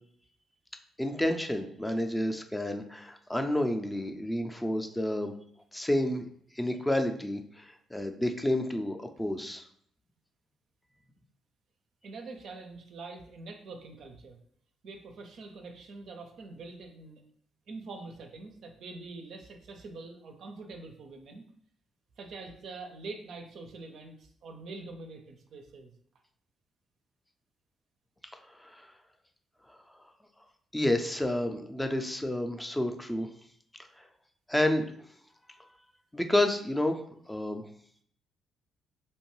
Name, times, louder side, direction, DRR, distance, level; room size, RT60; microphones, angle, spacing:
voice 1, 1.0-5.3 5.7-6.2 6.5-9.6 28.3-28.9 29.7-29.8 30.7-33.3 34.0-34.1 34.5-34.9 36.1-37.0 37.3-37.6, left 1 dB, 10° left, 5 dB, 0.4 m, -30 dB
voice 2, 12.0-14.4 14.8-17.2 17.7-21.4 22.2-25.9, right 3 dB, 65° right, 4 dB, 0.4 m, -45 dB
2.7 x 2.2 x 3.0 m, 0.62 s
hypercardioid pair, 50°, 0 cm